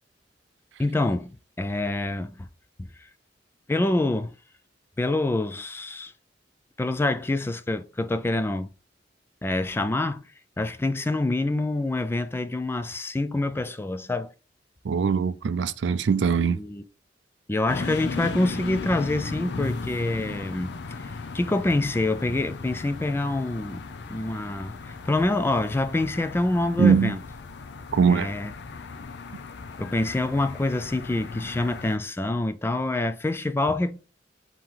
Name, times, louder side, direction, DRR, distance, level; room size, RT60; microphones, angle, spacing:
voice 1, 0.8-2.5 2.8-3.1 3.7-4.3 5.0-6.1 6.8-8.7 9.4-10.3 10.6-14.3 16.4-16.8 17.5-27.2 28.1-28.5 29.8-34.0, left 2 dB, 15° left, 0.3 m, -26 dB
voice 2, 14.8-16.6 26.8-27.2 27.9-28.3, right 6 dB, 70° right, 0.4 m, -21 dB
sound 1, 17.7-32.0, left 4 dB, 65° left, 0.6 m, -37 dB
3.7 x 2.9 x 4.6 m
head